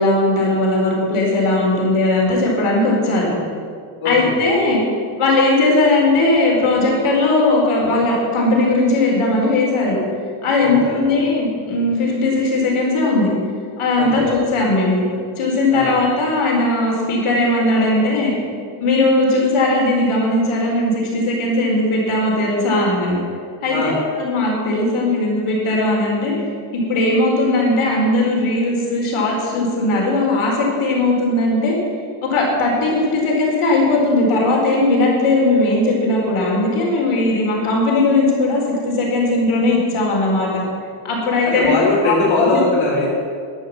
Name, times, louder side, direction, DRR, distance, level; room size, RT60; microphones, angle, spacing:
voice 1, 0.0-3.3 4.0-4.8 5.2-10.0 10.4-13.3 13.8-15.0 15.4-18.3 18.8-23.2 23.6-26.3 26.7-31.7 32.2-40.6 41.0-42.2, left 2 dB, 85° left, -2 dB, 4.7 m, -18 dB
voice 2, 4.0-4.4 10.6-11.0 14.0-14.3 15.7-16.0 23.7-23.9 41.6-43.1, left 3 dB, 70° left, -6 dB, 3.8 m, -20 dB
12.0 x 12.0 x 7.8 m, 2.3 s
wide cardioid pair, 175°, 49 cm